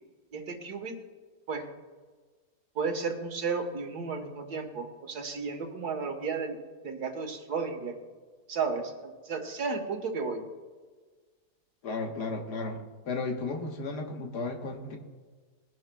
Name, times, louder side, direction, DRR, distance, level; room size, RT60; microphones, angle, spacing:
voice 1, 0.3-1.0 1.5-1.7 2.8-6.6 6.8-8.0 8.5-10.4, right 5 dB, 70° right, 4 dB, 1.8 m, -33 dB
voice 2, 11.8-12.8 13.1-15.0, left 3 dB, 75° left, 3 dB, 1.8 m, -34 dB
20.0 x 11.0 x 2.2 m, 1.4 s
omnidirectional pair, 1.8 m